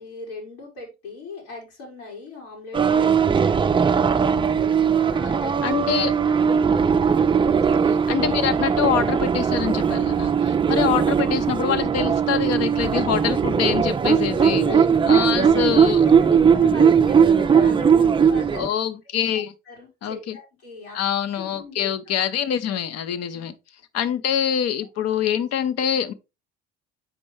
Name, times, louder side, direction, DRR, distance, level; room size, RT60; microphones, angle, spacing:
voice 1, 0.0-5.6 6.0-8.1 14.0-15.2 15.6-18.7 19.6-21.0 21.4-21.9 23.3-23.5 25.8-25.9, left 3 dB, 85° left, 4.4 m, -38 dB
sound 1, 2.7-18.7, right 7 dB, 15° right, 0.4 m, -19 dB
voice 2, 5.6-6.1 8.1-14.6 15.1-16.0 18.5-19.5 20.0-20.4 20.9-23.5 23.9-26.1, left 9 dB, 55° left, 0.9 m, -25 dB
7.6 x 5.3 x 3.2 m
supercardioid pair, 80°, 30 cm